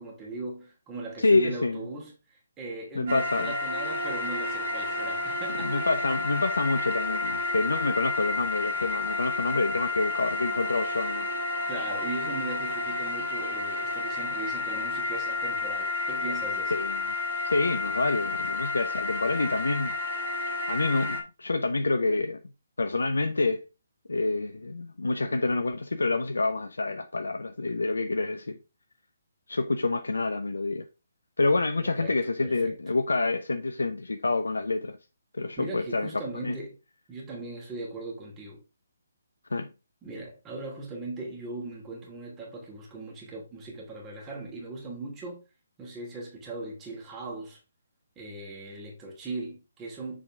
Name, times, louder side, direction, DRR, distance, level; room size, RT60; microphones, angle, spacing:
voice 1, 0.0-5.8 11.7-16.7 31.8-32.2 32.4-32.8 35.6-36.8 37.1-38.6 40.0-45.4 45.8-47.6 48.2-50.2, right 2 dB, 15° right, 2.7 m, -39 dB
voice 2, 1.2-1.8 2.9-3.5 5.6-11.3 16.7-17.0 17.4-20.0 20.7-22.4 22.8-23.6 24.1-28.6 29.5-30.9 31.4-35.0 35.4-36.1 36.3-36.6 39.5-39.7, left 3 dB, 80° left, 0.7 m, -27 dB
sound 1, 3.1-21.2, left 3 dB, 50° right, 2.3 m, -31 dB
7.1 x 4.9 x 3.6 m
figure-of-eight pair, 145°, 0 cm